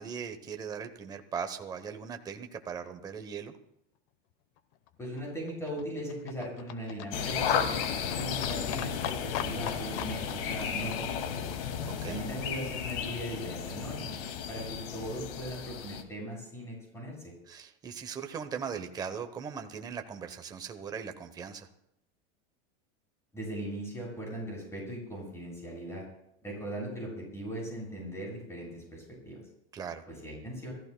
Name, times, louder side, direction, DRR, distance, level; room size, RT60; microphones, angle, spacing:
voice 1, 0.0-3.5 11.9-12.2 17.5-21.7 29.7-30.0, right 6 dB, 15° right, 6 dB, 0.8 m, -39 dB
Livestock farm animals working animals, 4.6-12.8 13.0-13.1 13.4-13.5 13.7-13.8 14.0-14.1 14.3-14.4 14.6-14.7 14.9-15.0 15.2-15.3, left 10 dB, 40° left, 0.9 m, -43 dB
voice 2, 5.0-7.8 8.1-11.5 12.1-14.2 14.5-17.3 23.3-26.0 26.4-29.4 30.1-30.7, right 1 dB, 10° left, -3 dB, 7.2 m, -39 dB
sound 1, 7.1-16.0, left 7 dB, 70° left, 2.2 m, -34 dB
29.0 x 14.5 x 2.2 m, 0.78 s
supercardioid pair, 170°, 29 cm